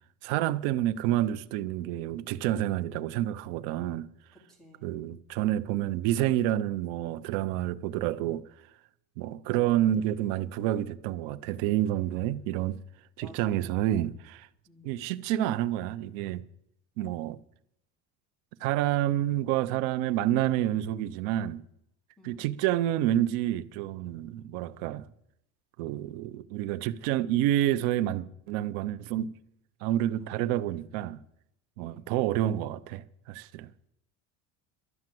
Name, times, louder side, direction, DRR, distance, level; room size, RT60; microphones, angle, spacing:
voice 1, 0.2-4.1 4.8-8.4 9.2-12.8 13.2-14.5 14.8-16.4 17.0-17.4 18.6-21.6 22.2-25.1 25.8-29.3 29.8-31.2 31.8-33.7, right 13 dB, 75° right, 0.8 m, -29 dB
voice 2, 4.5-5.0 13.2-13.5 14.7-14.9 22.2-22.4 31.8-32.0, equal, ahead, 3.1 m, -54 dB
12.0 x 8.6 x 7.7 m
cardioid pair, 180°, 34 cm